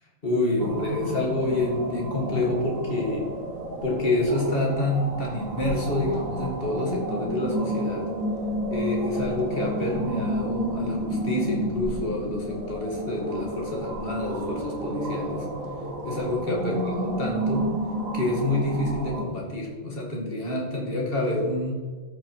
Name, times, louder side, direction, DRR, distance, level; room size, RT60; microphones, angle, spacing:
voice 1, 0.2-3.3 3.8-8.1 8.7-15.5 16.0-17.7 18.1-21.7, left 1 dB, 45° left, -2 dB, 2.3 m, -27 dB
sound 1, 0.6-19.2, right 1 dB, 85° right, 1.7 m, -31 dB
13.5 x 5.0 x 4.4 m, 1.5 s
omnidirectional pair, 1.3 m